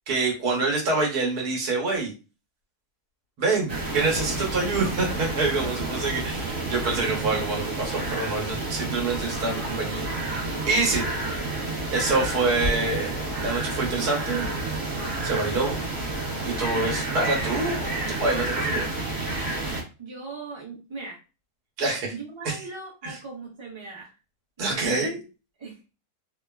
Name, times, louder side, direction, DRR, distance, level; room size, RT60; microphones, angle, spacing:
voice 1, 0.1-2.1 3.4-10.1 10.7-11.0 11.9-14.5 15.2-15.8 16.4-18.9 21.8-22.1 22.4-22.6 23.0-23.2 24.6-25.2, right 3 dB, 80° right, -1 dB, 1.6 m, -26 dB
sound 1, 3.7-19.8, right 2 dB, 50° right, 1.1 m, -30 dB
voice 2, 20.0-21.2 22.1-24.2 24.6-25.1 25.6-25.9, right 4 dB, 25° right, -3 dB, 0.8 m, -39 dB
3.1 x 2.2 x 2.3 m, 0.31 s
omnidirectional pair, 1.6 m